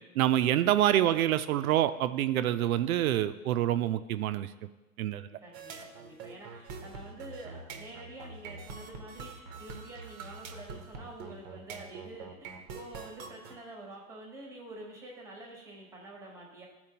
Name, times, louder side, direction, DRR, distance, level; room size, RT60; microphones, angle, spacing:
voice 1, 0.2-4.5 5.0-5.3, right 12 dB, 70° right, 12 dB, 0.5 m, -26 dB
voice 2, 5.4-16.7, right 2 dB, 5° right, -1 dB, 1.0 m, -47 dB
sound 1, 5.5-13.6, right 4 dB, 30° right, 0.7 m, -44 dB
12.5 x 4.4 x 2.8 m, 1.1 s
hypercardioid pair, 145°, 45 cm